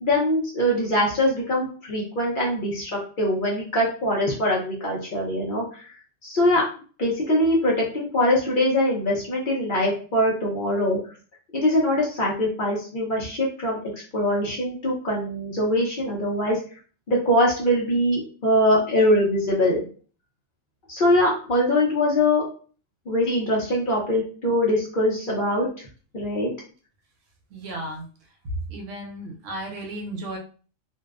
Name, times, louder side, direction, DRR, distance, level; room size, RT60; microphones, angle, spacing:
voice 1, 0.0-5.6 6.2-6.6 7.0-11.0 11.5-13.8 14.1-16.6 17.1-19.8 20.9-22.4 23.1-25.7 26.1-26.5, left 1 dB, 50° left, -4 dB, 0.7 m, -22 dB
voice 2, 27.5-28.0 28.7-30.4, right 1 dB, 75° right, 1 dB, 1.0 m, -34 dB
2.6 x 2.1 x 2.4 m, 0.40 s
omnidirectional pair, 1.3 m